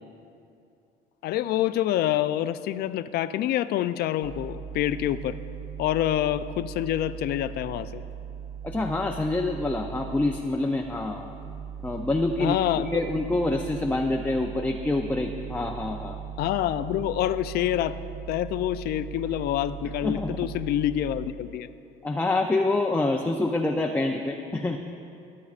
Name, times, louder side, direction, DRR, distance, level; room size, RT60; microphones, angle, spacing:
voice 1, 1.2-5.4 5.8-8.0 12.4-13.1 16.4-18.0 18.3-21.7, left 12 dB, 70° left, 13 dB, 0.4 m, -27 dB
sound 1, 4.2-10.4 10.7-21.3, right 8 dB, 35° right, 0.6 m, -39 dB
voice 2, 8.6-11.3 11.8-16.2 20.0-20.5 22.0-24.8, left 2 dB, 10° left, 2 dB, 0.5 m, -26 dB
21.5 x 8.3 x 2.5 m, 2.6 s
cardioid pair, 110°, 17 cm